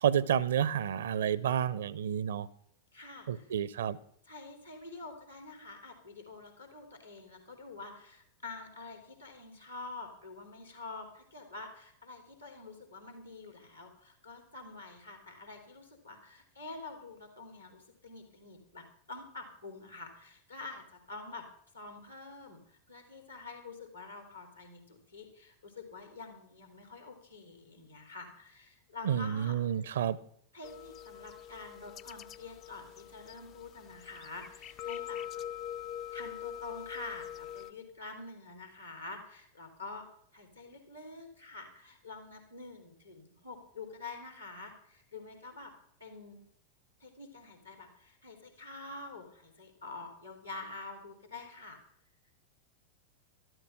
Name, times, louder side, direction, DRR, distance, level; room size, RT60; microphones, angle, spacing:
voice 1, 0.0-2.5 3.3-4.0 29.0-30.2, right 9 dB, 60° right, 0.6 m, -30 dB
voice 2, 2.9-3.5 4.2-21.4 21.7-29.6 30.5-35.2 36.1-45.7 46.0-46.4 47.0-51.8, left 3 dB, 85° left, 3.3 m, -47 dB
sound 1, 30.6-37.7, left 10 dB, 35° left, 0.5 m, -43 dB
12.5 x 12.5 x 5.7 m
figure-of-eight pair, 90°, 0 cm